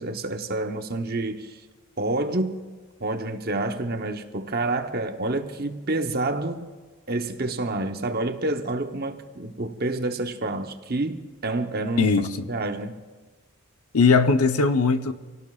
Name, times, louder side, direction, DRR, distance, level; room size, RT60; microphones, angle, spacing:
voice 1, 0.0-1.6 2.0-2.7 3.0-6.7 7.1-12.1 12.5-12.9, right 2 dB, 45° right, 0.9 m, -28 dB
voice 2, 12.0-12.5 13.9-15.1, left 4 dB, 85° left, 0.9 m, -20 dB
27.0 x 18.0 x 2.4 m
head